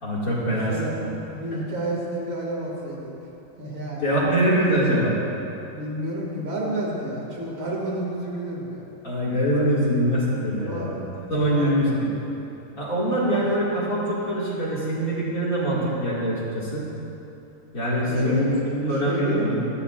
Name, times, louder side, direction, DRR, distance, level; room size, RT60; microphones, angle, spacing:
voice 1, 0.0-1.0 1.5-1.6 4.0-5.2 9.0-11.0 11.3-12.1 12.8-16.9 17.7-19.5, equal, 45° left, -7 dB, 2.5 m, -23 dB
voice 2, 1.3-3.1 3.6-4.1 5.7-8.8 10.6-10.9 11.5-12.0 13.0-13.4 18.0-18.6 18.9-19.5, right 1 dB, 80° right, -4 dB, 2.9 m, -31 dB
16.5 x 13.0 x 2.5 m, 3.0 s
omnidirectional pair, 2.1 m